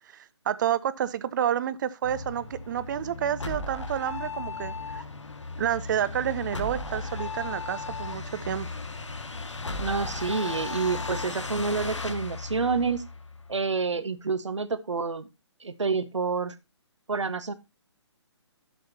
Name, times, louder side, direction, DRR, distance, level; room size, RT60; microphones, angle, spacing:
voice 1, 0.1-5.0 5.6-8.7, right 10 dB, 40° right, 0.8 m, -29 dB
sound 1, 2.0-13.5, left 3 dB, 85° left, 1.8 m, -36 dB
voice 2, 9.8-13.0 13.5-15.3 15.6-16.5 17.1-17.5, right 4 dB, 80° right, 1.3 m, -28 dB
11.5 x 7.6 x 2.8 m
figure-of-eight pair, 140°, 15 cm